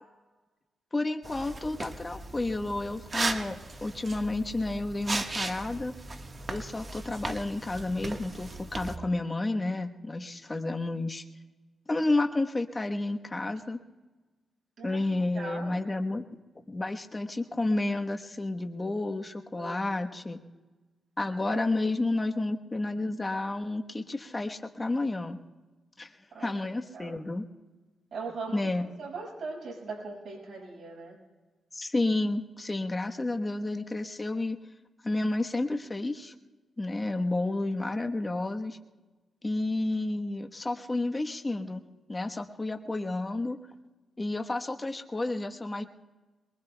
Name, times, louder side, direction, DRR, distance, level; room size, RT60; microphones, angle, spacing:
voice 1, 0.9-5.9 6.5-11.2 11.9-13.8 14.8-16.2 16.7-20.4 21.2-25.4 26.0-26.1 26.4-27.5 28.5-28.9 31.7-34.6 35.0-36.3 36.8-38.8 39.4-41.8 42.1-43.6 44.2-45.8, left 2 dB, 20° left, 4 dB, 1.1 m, -31 dB
sound 1, 1.2-9.0, right 3 dB, 35° right, 1.4 m, -37 dB
voice 2, 14.8-15.8 19.6-19.8 21.5-21.6 26.3-27.2 28.1-31.2 37.4-37.5, right 4 dB, 60° right, -4 dB, 6.2 m, -40 dB
24.0 x 22.0 x 2.3 m, 1.2 s
cardioid pair, 95°, 0 cm